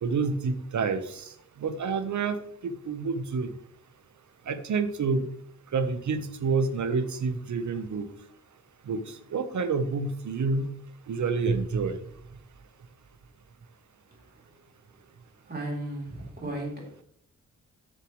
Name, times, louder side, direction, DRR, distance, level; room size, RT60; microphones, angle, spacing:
voice 1, 0.0-1.3 1.6-3.5 4.5-5.2 5.7-8.1 8.9-9.0 9.3-10.7 11.1-12.0, right 4 dB, 65° right, 9 dB, 1.1 m, -28 dB
voice 2, 15.5-17.0, right 1 dB, 30° right, -2 dB, 3.5 m, -35 dB
14.5 x 6.6 x 3.2 m, 0.66 s
wide cardioid pair, 150°, 32 cm